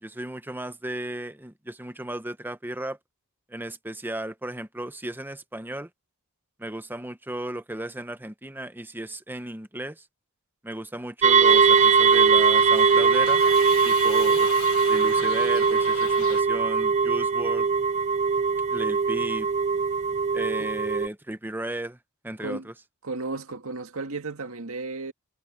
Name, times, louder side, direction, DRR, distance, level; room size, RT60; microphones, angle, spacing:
voice 1, 0.0-3.0 3.5-5.9 6.6-10.0 10.6-13.4 13.8-14.5 14.9-17.7 18.7-19.5 20.3-22.0 22.2-22.7, right 1 dB, 10° right, 1.0 m, -35 dB
sound 1, 11.2-21.1, right 5 dB, 35° right, 0.6 m, -21 dB
Shout / Livestock farm animals working animals, 11.4-16.4, left 7 dB, 85° left, 1.6 m, -38 dB
voice 2, 23.0-25.1, right 3 dB, 75° right, 2.0 m, -34 dB
head